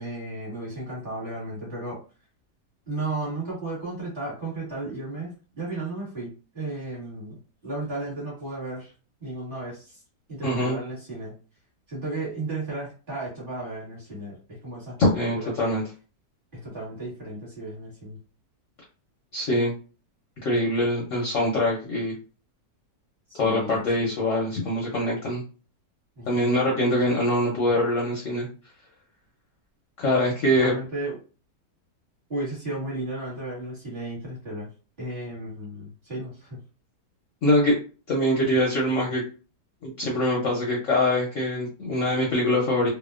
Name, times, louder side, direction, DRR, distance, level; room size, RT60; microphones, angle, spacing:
voice 1, 0.0-2.0 2.9-7.4 7.6-8.9 9.2-10.0 10.3-11.3 11.9-15.8 16.6-18.2 23.3-24.1 26.2-27.1 30.6-31.1 32.3-34.7 35.0-36.6, right 2 dB, 35° right, -7 dB, 1.3 m, -34 dB
voice 2, 10.4-10.8 15.0-15.8 19.3-19.7 20.4-22.1 23.4-25.4 26.3-28.5 30.0-30.7 37.4-37.8 38.1-39.2 39.8-42.9, left 1 dB, 60° left, -3 dB, 0.8 m, -23 dB
2.7 x 2.1 x 2.3 m, 0.36 s
omnidirectional pair, 1.8 m